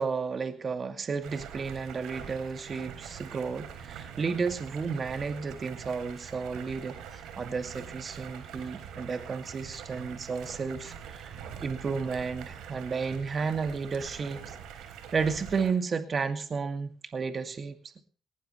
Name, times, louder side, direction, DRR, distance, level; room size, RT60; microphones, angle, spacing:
voice 1, 0.0-14.6 15.1-17.8, right 5 dB, 40° right, 8 dB, 2.3 m, -32 dB
Stream, 1.2-15.7, right 8 dB, 90° right, 3.8 m, -44 dB
19.5 x 18.5 x 3.2 m, 0.38 s
cardioid pair, 90°, 0 cm